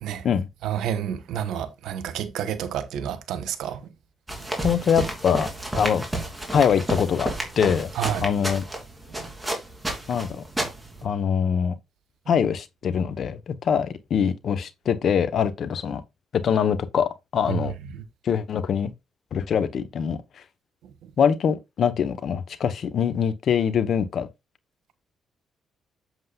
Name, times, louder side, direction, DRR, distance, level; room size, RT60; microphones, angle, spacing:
voice 1, 0.6-3.8 7.9-8.2 17.5-17.6 18.0-18.1 21.0-21.1, right 9 dB, 85° right, 1.1 m, -29 dB
sound 1, 4.3-11.0, right 1 dB, 10° right, 3.2 m, -31 dB
voice 2, 4.6-5.5 5.8-6.0 6.5-7.3 7.6-7.9 8.2-8.6 10.1-10.4 11.0-11.7 12.3-16.0 16.3-17.7 18.2-18.9 19.3-20.2 21.2-24.3, left 7 dB, 60° left, 1.2 m, -23 dB
8.2 x 7.3 x 2.5 m
cardioid pair, 90°, 0 cm